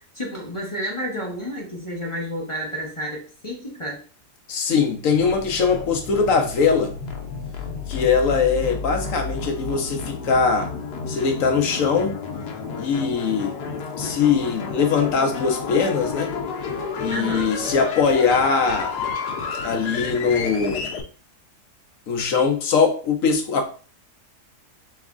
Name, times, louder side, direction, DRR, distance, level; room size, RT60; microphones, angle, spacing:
voice 1, 0.1-4.0 17.1-17.5, equal, 30° left, -2 dB, 0.6 m, -30 dB
voice 2, 4.5-6.9 7.9-10.7 11.1-12.2 12.8-13.5 14.0-16.3 17.0-18.9 19.6-20.9 22.1-23.7, left 5 dB, 65° left, 5 dB, 1.0 m, -21 dB
sound 1, 5.1-21.0, left 5 dB, 80° left, 1.3 m, -31 dB
3.4 x 3.1 x 3.7 m, 0.40 s
omnidirectional pair, 1.7 m